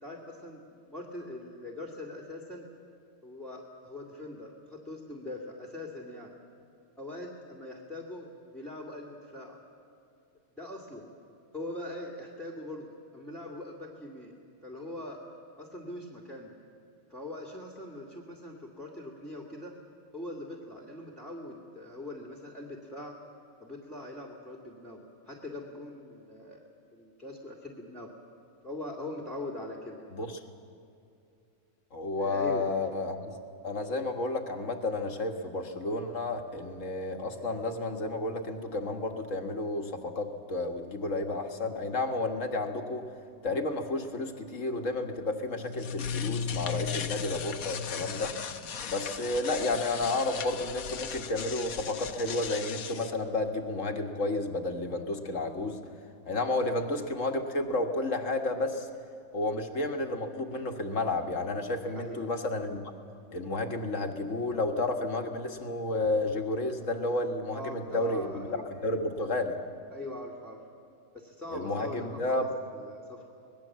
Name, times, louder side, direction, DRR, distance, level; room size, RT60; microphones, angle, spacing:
voice 1, 0.0-2.7 3.2-6.3 7.0-9.6 10.6-11.1 11.5-15.2 15.6-16.5 17.1-19.8 20.1-23.2 23.6-28.1 28.6-30.0 32.1-32.7 61.8-62.2 67.5-68.7 69.9-70.6 71.1-72.5 72.7-73.3, left 1 dB, ahead, -1 dB, 2.2 m, -42 dB
voice 2, 31.9-33.4 33.6-43.0 43.4-48.4 48.9-55.8 56.3-58.9 59.3-62.8 63.3-69.6 71.5-72.5, left 2 dB, 65° left, 4 dB, 1.9 m, -31 dB
sound 1, 45.6-53.1, left 7 dB, 80° left, 1.4 m, -36 dB
26.0 x 19.5 x 7.5 m, 2.6 s
omnidirectional pair, 1.4 m